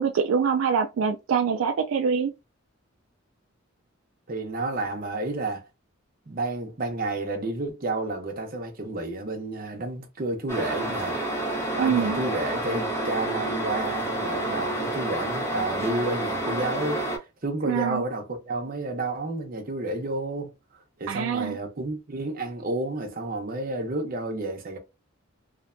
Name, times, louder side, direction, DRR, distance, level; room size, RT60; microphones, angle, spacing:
voice 1, 0.0-2.3 11.8-12.2 17.6-18.0 21.1-21.6, right 6 dB, 75° right, 0.3 m, -24 dB
voice 2, 4.3-5.7 6.3-11.2 11.7-17.0 17.4-20.5 21.0-24.8, right 2 dB, 40° right, 0.7 m, -30 dB
sound 1, 10.5-17.2, right 1 dB, 10° left, 0.6 m, -29 dB
2.5 x 2.1 x 2.5 m
head